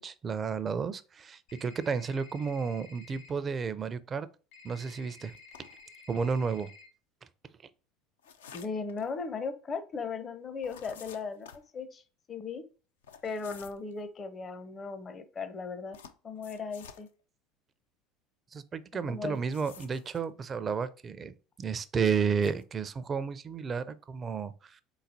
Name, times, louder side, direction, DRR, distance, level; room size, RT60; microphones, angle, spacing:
voice 1, 0.0-4.3 4.6-5.3 6.1-6.7 18.5-24.8, right 6 dB, 35° right, 0.4 m, -32 dB
sound 1, 1.5-3.3 4.5-6.9, left 4 dB, 60° left, 1.2 m, -53 dB
sound 2, 5.4-5.9 8.2-9.1 10.6-11.7 13.0-13.9 15.9-17.1 19.2-20.3 22.3-22.6, left 7 dB, 80° left, 0.4 m, -51 dB
voice 2, 8.5-12.0 12.3-12.6 13.2-16.0 16.2-17.1 19.1-19.4, left 4 dB, 35° left, 0.6 m, -37 dB
4.0 x 3.9 x 2.7 m
hypercardioid pair, 70°, 0 cm